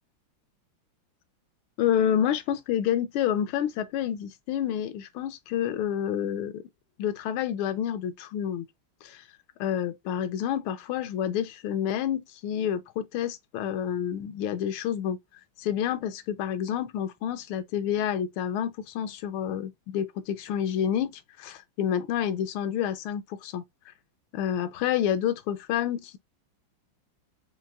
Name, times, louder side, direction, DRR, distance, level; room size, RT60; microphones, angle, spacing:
voice 1, 1.8-6.6 7.0-8.7 9.0-9.2 9.6-15.2 15.6-23.6 24.3-26.2, left 9 dB, 80° left, 1.5 m, -29 dB
5.7 x 2.5 x 2.3 m
omnidirectional pair, 2.3 m